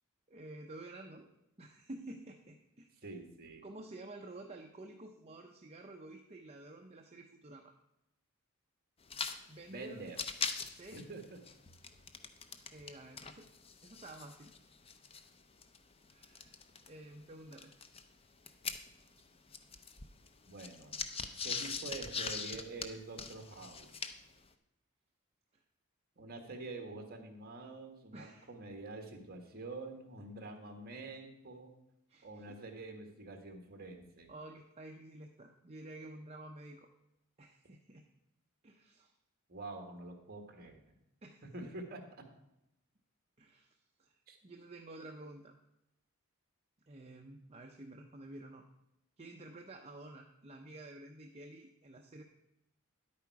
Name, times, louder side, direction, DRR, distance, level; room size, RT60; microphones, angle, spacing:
voice 1, 0.3-1.3 1.6-3.0 3.6-7.7 9.5-10.0 10.7-11.1 12.6-13.5 13.8-14.5 16.1-17.7 28.1-28.5 32.1-32.6 34.3-36.9 37.4-38.0 38.6-39.1 41.2-41.5 43.4-45.6 46.9-48.7 49.2-52.2, right 2 dB, 30° right, 2 dB, 0.7 m, -51 dB
voice 2, 3.0-3.6 9.7-10.2 10.9-11.4 20.4-21.0 21.4-24.0 26.2-31.7 32.2-34.3 39.5-40.8 41.4-42.2 44.3-44.4, right 3 dB, 45° right, 4 dB, 1.6 m, -46 dB
sound 1, 9.0-9.4 9.6-9.7 10.0-12.9 13.2-16.9 17.5-19.2 19.5-24.3, left 5 dB, 25° left, 0.6 m, -41 dB
10.0 x 8.7 x 4.7 m, 0.85 s
head